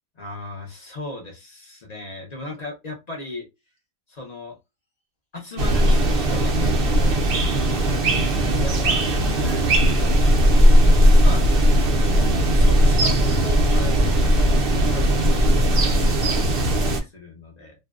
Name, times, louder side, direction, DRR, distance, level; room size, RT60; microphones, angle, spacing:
voice 1, 0.2-3.5 4.1-4.6 5.3-7.2 8.6-9.0 9.4-9.8 11.2-11.4 12.5-14.0 14.7-17.7, left 2 dB, 50° left, 0 dB, 0.5 m, -37 dB
sound 1, 5.6-17.0, equal, 60° right, 0.6 m, -18 dB
2.5 x 2.1 x 2.3 m, 0.24 s
omnidirectional pair, 1.5 m